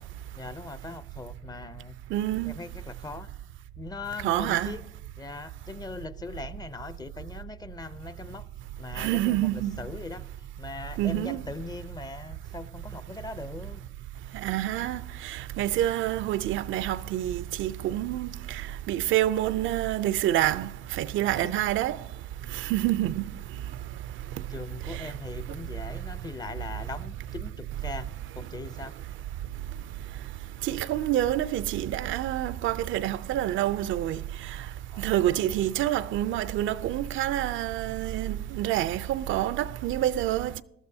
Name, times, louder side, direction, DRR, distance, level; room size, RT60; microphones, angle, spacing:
voice 1, 0.4-1.9 2.4-3.3 3.8-4.8 5.2-8.5 8.8-9.5 9.8-10.3 10.6-13.8 21.4-21.5 24.5-28.1 28.3-29.0 34.9-35.1, left 3 dB, 20° left, 0.5 m, -40 dB
voice 2, 2.1-2.5 4.2-4.7 9.0-9.8 11.0-11.4 14.3-18.6 18.9-22.0 22.5-23.2 24.9-25.0 30.6-34.2 35.0-40.6, right 13 dB, 75° right, 0.4 m, -27 dB
19.0 x 13.0 x 2.7 m
cardioid pair, 90°, 20 cm